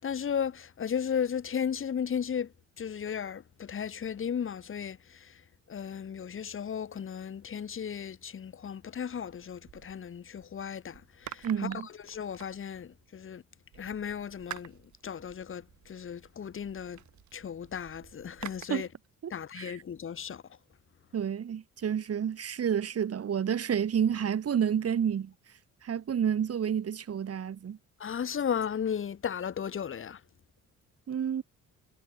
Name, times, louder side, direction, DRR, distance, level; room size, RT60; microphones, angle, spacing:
voice 1, 0.0-2.5 2.8-5.0 5.7-11.0 11.3-11.5 12.1-13.4 13.8-14.7 15.0-15.6 15.9-17.0 17.3-18.9 19.3-20.4 28.0-30.2, left 7 dB, 45° left, 1.7 m, -35 dB
sound 1, 9.3-10.5 10.9-13.1 13.7-18.7, right 11 dB, 70° right, 4.4 m, -49 dB
voice 2, 11.4-11.9 18.7-18.9 19.2-19.8 21.1-25.3 25.8-27.8 31.1-31.4, right 8 dB, 55° right, 3.3 m, -30 dB
cardioid pair, 90°, 30 cm